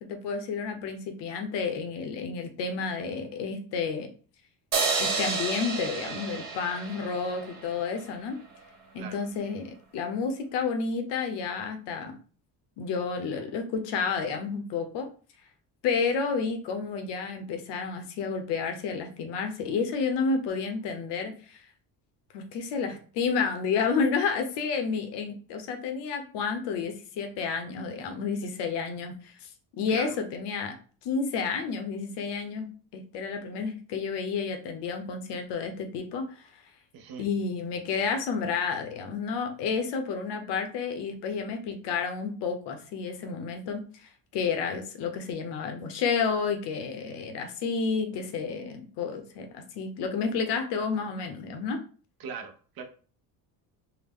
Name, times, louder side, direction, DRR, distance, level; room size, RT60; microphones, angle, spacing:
voice 1, 0.0-4.1 5.0-8.4 8.9-12.2 12.8-15.1 15.8-21.6 22.3-29.5 29.8-30.8 31.0-32.7 32.9-36.4 37.2-51.8, left 5 dB, 75° left, 6 dB, 0.9 m, -30 dB
sound 1, 4.7-8.0, right 4 dB, 40° right, 1.3 m, -30 dB
voice 2, 36.9-37.3 52.2-52.8, right 6 dB, 55° right, 6 dB, 0.7 m, -40 dB
3.5 x 2.1 x 3.6 m, 0.40 s
cardioid pair, 130°, 42 cm